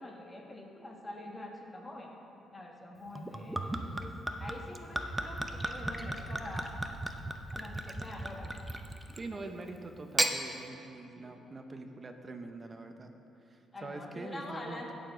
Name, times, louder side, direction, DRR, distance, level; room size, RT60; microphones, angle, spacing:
voice 1, 0.0-2.1 2.5-6.7 7.5-8.5 9.3-9.4 11.2-11.3 13.7-14.9, left 1 dB, 25° left, 0 dB, 1.9 m, -45 dB
Gurgling / Chink clink / Liquid, 3.2-9.3 10.0-10.4, right 1 dB, 10° right, 0.8 m, -35 dB
voice 2, 9.2-13.1 13.4-14.9, right 2 dB, 35° right, 5 dB, 1.1 m, -44 dB
16.5 x 6.9 x 3.9 m, 2.9 s
cardioid pair, 75°, 0 cm